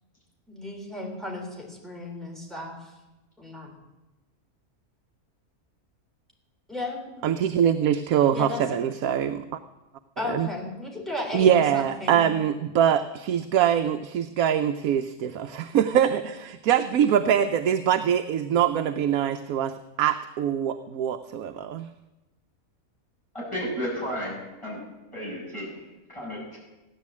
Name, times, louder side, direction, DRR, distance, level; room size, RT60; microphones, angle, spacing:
voice 1, 0.5-2.9 3.4-3.7 6.7-7.0 7.5-7.7 8.3-8.6 10.2-12.2, left 2 dB, ahead, -1 dB, 3.9 m, -34 dB
voice 2, 7.2-9.4 10.3-10.5 11.3-21.9, right 9 dB, 75° right, 9 dB, 1.1 m, -23 dB
voice 3, 23.3-24.8 25.1-26.6, equal, 20° left, -5 dB, 7.4 m, -33 dB
16.0 x 10.5 x 8.4 m, 1.1 s
omnidirectional pair, 1.5 m